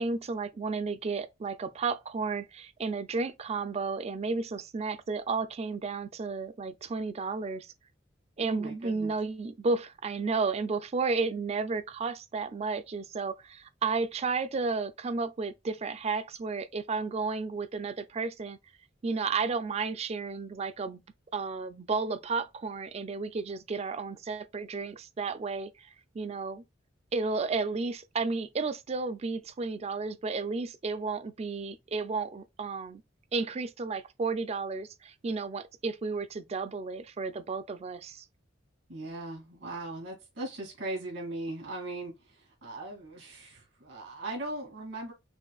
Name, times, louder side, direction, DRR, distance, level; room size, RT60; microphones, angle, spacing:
voice 1, 0.0-7.7 8.4-18.6 19.0-21.0 21.3-25.9 26.1-26.6 27.1-33.0 33.3-38.3, right 4 dB, 30° right, 0.4 m, -32 dB
voice 2, 8.4-9.1 38.9-45.1, right 2 dB, 75° right, 2.5 m, -39 dB
6.3 x 2.5 x 2.3 m
head